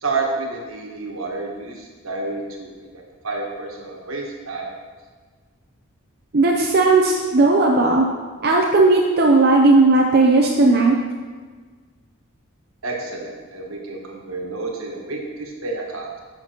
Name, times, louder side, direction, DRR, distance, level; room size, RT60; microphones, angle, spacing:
voice 1, 0.0-4.8 12.8-16.2, right 3 dB, 75° right, -1 dB, 1.4 m, -30 dB
voice 2, 6.3-8.1 8.4-11.0, right 3 dB, 50° right, 0 dB, 0.6 m, -15 dB
10.5 x 5.9 x 2.9 m, 1.5 s
head